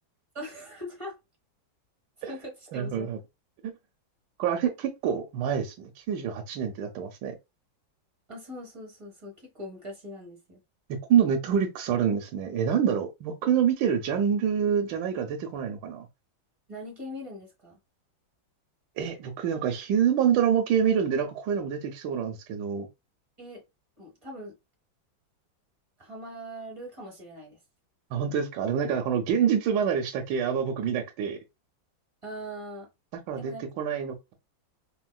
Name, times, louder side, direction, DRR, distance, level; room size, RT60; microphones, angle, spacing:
voice 1, 0.3-1.2 2.2-3.1 8.3-10.6 16.7-17.8 23.4-23.6 24.0-24.5 26.0-27.6 32.2-32.9 33.3-33.8, equal, 35° right, 0.5 m, -41 dB
voice 2, 2.7-3.2 3.6-3.7 4.4-7.3 10.9-16.1 19.0-22.9 28.1-31.4 33.3-34.3, right 8 dB, 75° right, 1.2 m, -26 dB
4.4 x 2.1 x 2.2 m
omnidirectional pair, 2.2 m